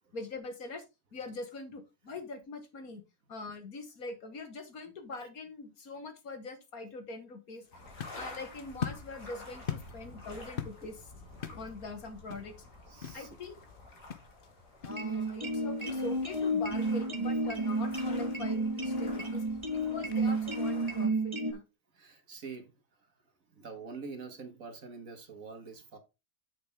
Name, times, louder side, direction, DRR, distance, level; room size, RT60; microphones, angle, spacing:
voice 1, 0.1-0.8 1.1-3.0 3.3-7.6 8.1-11.0 11.5-12.5 13.1-13.6 14.8-19.4 19.7-21.7, left 3 dB, 65° left, 1.9 m, -43 dB
sound 1, 7.6-21.2, left 7 dB, 45° left, 0.8 m, -46 dB
sound 2, 7.7-21.1, left 2 dB, 85° left, 3.4 m, -50 dB
voice 2, 12.9-13.3 19.7-19.9 22.0-22.7 23.6-26.0, right 4 dB, 55° right, 2.0 m, -45 dB
sound 3, 14.9-21.5, right 1 dB, 20° right, 1.3 m, -31 dB
8.1 x 6.5 x 3.5 m
omnidirectional pair, 1.7 m